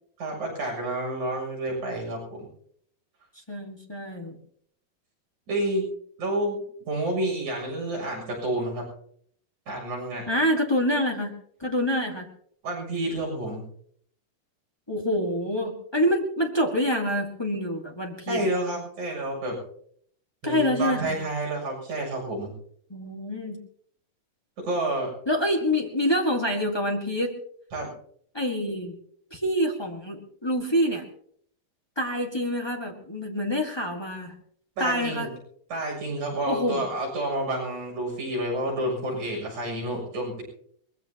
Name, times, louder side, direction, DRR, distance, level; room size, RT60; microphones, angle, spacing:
voice 1, 0.2-2.5 5.5-5.9 6.2-8.9 9.7-10.3 12.6-13.7 18.3-19.6 20.4-22.5 24.6-25.1 27.7-27.9 34.8-35.3 35.7-40.4, right 1 dB, 55° right, -1 dB, 8.7 m, -29 dB
voice 2, 3.5-4.4 10.3-11.3 11.6-12.3 14.9-18.5 20.4-21.2 22.9-23.6 25.3-27.4 28.3-29.0 29.3-31.0 31.9-34.3 34.8-35.3 36.4-36.8, equal, 35° left, 0 dB, 0.4 m, -26 dB
23.0 x 21.0 x 2.9 m, 0.64 s
omnidirectional pair, 4.0 m